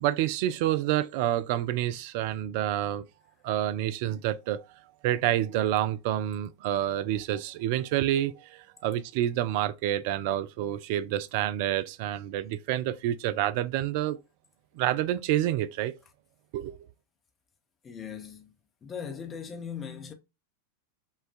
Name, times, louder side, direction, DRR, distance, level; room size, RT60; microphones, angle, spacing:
voice 1, 0.0-3.0 3.4-4.6 5.0-14.2 14.8-16.0 16.5-16.8, right 12 dB, 50° right, 0.3 m, -28 dB
voice 2, 17.8-18.5 18.8-20.1, left 7 dB, 20° left, 0.8 m, -39 dB
5.4 x 2.3 x 2.4 m
figure-of-eight pair, 90°, 0 cm